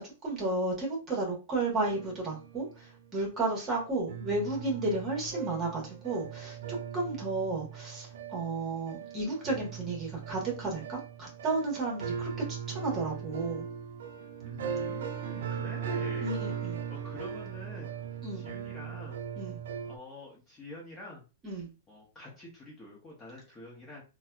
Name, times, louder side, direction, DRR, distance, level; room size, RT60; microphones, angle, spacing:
voice 1, 0.0-6.6 6.9-12.3 12.7-13.7 16.2-16.8 18.2-18.4 19.4-19.6 21.4-21.7, right 2 dB, 20° right, -1 dB, 1.3 m, -33 dB
sound 1, 1.8-3.1 3.7-3.8 4.1-20.0, right 7 dB, 75° right, 0.4 m, -39 dB
voice 2, 14.4-16.3 16.9-17.9 18.3-19.2 19.8-21.2 21.9-24.0, left 1 dB, 15° left, -3 dB, 1.0 m, -47 dB
4.0 x 2.3 x 2.3 m, 0.32 s
hypercardioid pair, 145°, 0 cm